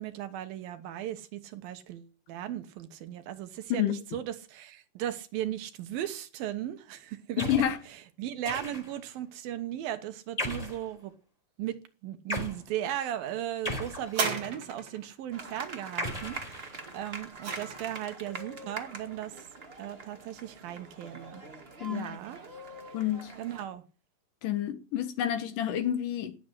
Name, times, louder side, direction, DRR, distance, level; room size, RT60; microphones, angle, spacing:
voice 1, 0.0-7.4 8.2-11.1 11.6-19.5 19.8-21.4 21.9-22.4 23.4-23.8, right 11 dB, 80° right, 3.0 m, -37 dB
voice 2, 7.4-7.8 21.8-22.2 22.9-23.3 24.4-26.4, left 11 dB, 70° left, 2.8 m, -29 dB
sound 1, 7.4-7.8 8.4-9.1 10.4-10.9 12.3-12.6 13.6-14.5 16.0-17.0, equal, 10° left, 4.1 m, -36 dB
sound 2, 14.1-15.1 16.8-18.2 19.0-19.1, right 4 dB, 45° right, 3.8 m, -34 dB
sound 3, 15.3-23.6, right 3 dB, 25° right, 1.4 m, -44 dB
18.5 x 7.7 x 10.0 m
omnidirectional pair, 4.2 m